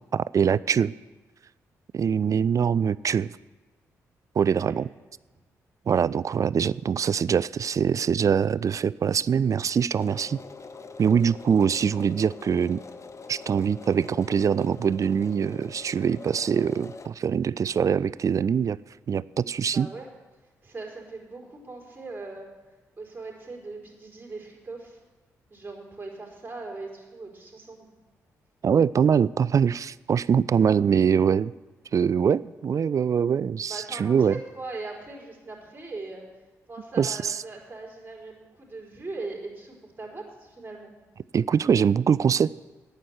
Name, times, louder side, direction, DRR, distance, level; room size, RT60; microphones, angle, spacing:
voice 1, 0.1-0.9 1.9-3.3 4.4-4.9 5.9-10.4 11.0-12.8 13.3-18.8 19.1-19.9 28.6-31.5 31.9-34.4 37.0-37.4 41.3-42.6, right 7 dB, 45° right, 20 dB, 0.3 m, -23 dB
sound 1, 10.0-17.1, left 4 dB, 40° left, 0.9 m, -44 dB
voice 2, 19.6-20.1 20.6-22.5 23.0-25.0 25.5-27.9 33.7-36.3 36.7-40.9, right 3 dB, 25° right, -2 dB, 4.2 m, -40 dB
9.2 x 8.0 x 8.8 m, 1.2 s
hypercardioid pair, 40°, 8 cm